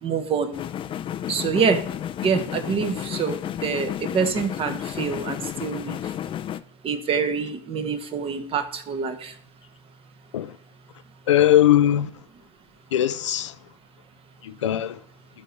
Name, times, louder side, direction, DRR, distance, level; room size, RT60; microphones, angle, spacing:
voice 1, 0.0-0.5 1.3-1.8 2.2-6.0 6.8-9.3, right 6 dB, 35° right, 1.3 m, -26 dB
sound 1, 0.5-6.6, left 10 dB, 35° left, 0.5 m, -32 dB
voice 2, 11.3-12.1 12.9-13.5 14.4-15.0, left 12 dB, 90° left, 0.5 m, -19 dB
12.0 x 4.0 x 4.6 m
hypercardioid pair, 85°, 15 cm